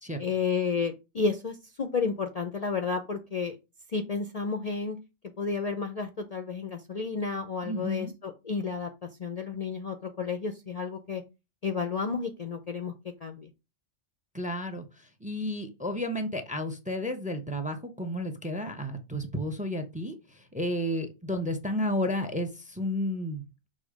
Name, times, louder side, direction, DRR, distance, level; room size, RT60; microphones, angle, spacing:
voice 1, 0.2-3.6 3.9-5.0 5.4-8.9 9.2-11.2 11.6-12.9 13.2-13.5, left 5 dB, 40° left, 6 dB, 0.6 m, -31 dB
voice 2, 7.6-8.1 14.3-23.7, left 1 dB, 10° right, 7 dB, 0.7 m, -32 dB
6.5 x 3.1 x 4.9 m, 0.26 s
omnidirectional pair, 1.2 m